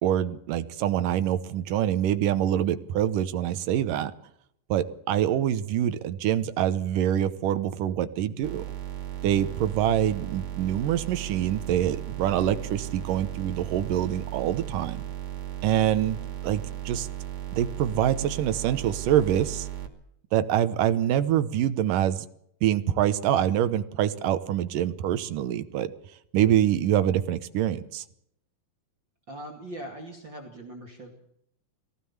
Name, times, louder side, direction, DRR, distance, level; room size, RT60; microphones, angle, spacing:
voice 1, 0.0-4.1 4.7-8.6 9.2-15.0 15.6-17.1 17.5-19.7 20.3-22.3 22.6-25.9 26.3-28.0, right 11 dB, 75° right, 13 dB, 2.6 m, -25 dB
sound 1, 8.4-19.9, right 11 dB, 50° right, 3.5 m, -36 dB
voice 2, 29.3-31.2, right 1 dB, 35° right, 1 dB, 2.9 m, -41 dB
22.5 x 17.0 x 7.2 m, 0.73 s
omnidirectional pair, 4.0 m